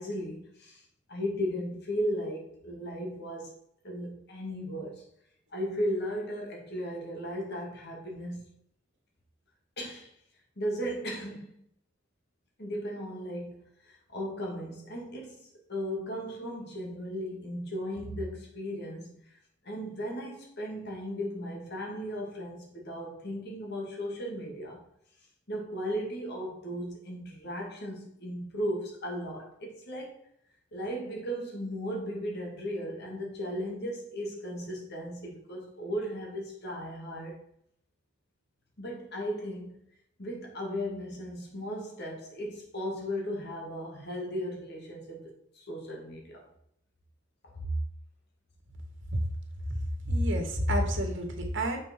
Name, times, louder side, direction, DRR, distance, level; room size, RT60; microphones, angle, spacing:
voice 1, 0.0-3.5 3.8-5.0 5.5-8.5 9.8-10.1 10.6-11.5 12.6-19.4 19.6-24.8 25.5-30.2 30.7-37.4 38.8-39.7 40.2-46.5 47.4-47.7, equal, 55° left, -1 dB, 2.4 m, -36 dB
voice 2, 50.0-51.8, equal, 65° right, 3 dB, 1.9 m, -28 dB
7.4 x 6.1 x 4.5 m, 0.72 s
head